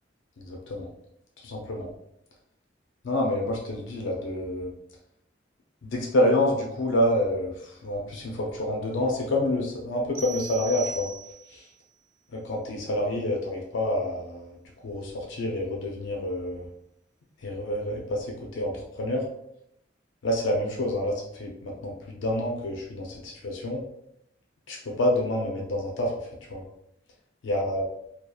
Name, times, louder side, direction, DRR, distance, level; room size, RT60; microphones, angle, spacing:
voice 1, 0.4-0.9 1.4-1.9 3.0-4.7 5.8-11.1 11.5-11.6 12.3-14.6 14.8-16.7 17.4-19.2 20.2-23.8 24.7-26.1 26.5-26.6 27.4-27.9, left 1 dB, 80° left, -1 dB, 0.5 m, -28 dB
sound 1, 10.1-11.7, right 6 dB, 50° right, 0.4 m, -38 dB
2.7 x 2.3 x 2.2 m, 0.77 s
head